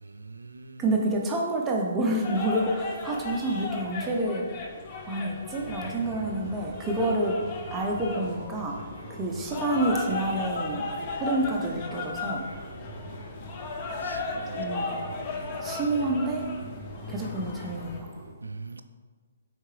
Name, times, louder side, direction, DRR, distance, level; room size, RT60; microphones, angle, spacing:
voice 1, 0.0-0.9 14.0-14.8 18.4-18.8, right 3 dB, 90° right, 9 dB, 0.3 m, -42 dB
voice 2, 0.8-4.5 5.1-7.4 7.7-8.8 9.1-10.8 11.2-12.4 14.5-15.0 15.6-16.5 17.1-18.1, right 1 dB, 15° right, 0 dB, 0.5 m, -28 dB
sound 1, 2.2-18.0, left 3 dB, 35° left, 0.6 m, -36 dB
Fixed-wing aircraft airplane, 5.7-18.3, right 1 dB, 80° left, 1.0 m, -43 dB
4.5 x 3.6 x 3.2 m, 1.5 s
hypercardioid pair, 140°, 0 cm